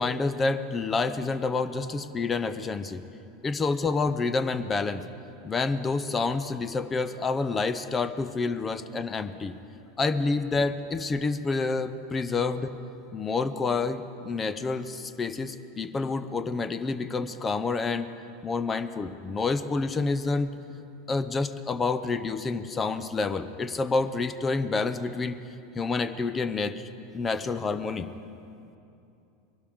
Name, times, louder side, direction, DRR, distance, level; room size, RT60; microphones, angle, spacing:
voice 1, 0.0-3.0 3.4-5.0 5.4-9.5 10.0-12.7 13.1-18.1 18.4-20.5 21.1-25.4 25.7-28.1, left 4 dB, 25° left, 11 dB, 0.7 m, -28 dB
22.0 x 12.0 x 3.6 m, 2.7 s
hypercardioid pair, 85°, 0 cm